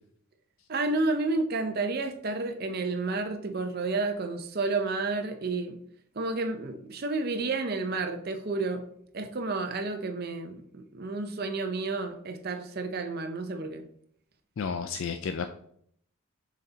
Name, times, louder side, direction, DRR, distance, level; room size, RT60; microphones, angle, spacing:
voice 1, 0.7-5.8 6.2-8.8 9.1-13.8, right 3 dB, 45° right, 6 dB, 0.6 m, -31 dB
voice 2, 14.6-15.5, left 5 dB, 65° left, 8 dB, 0.4 m, -32 dB
6.4 x 4.1 x 3.9 m, 0.67 s
head